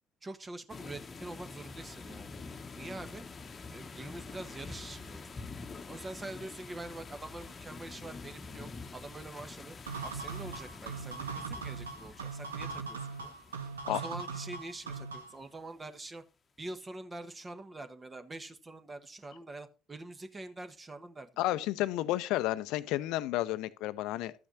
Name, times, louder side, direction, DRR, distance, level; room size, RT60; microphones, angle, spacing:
voice 1, 0.2-2.3 2.7-3.2 3.7-5.2 5.8-9.8 10.0-13.3 13.6-16.2 16.6-21.3, right 2 dB, 25° right, 1.3 m, -45 dB
sound 1, 0.7-15.3, left 4 dB, 35° left, 1.1 m, -47 dB
sound 2, 9.9-15.4, right 5 dB, 85° right, 0.9 m, -40 dB
voice 2, 21.4-24.3, left 15 dB, 65° left, 0.7 m, -31 dB
12.5 x 8.7 x 2.7 m
figure-of-eight pair, 55°, 0 cm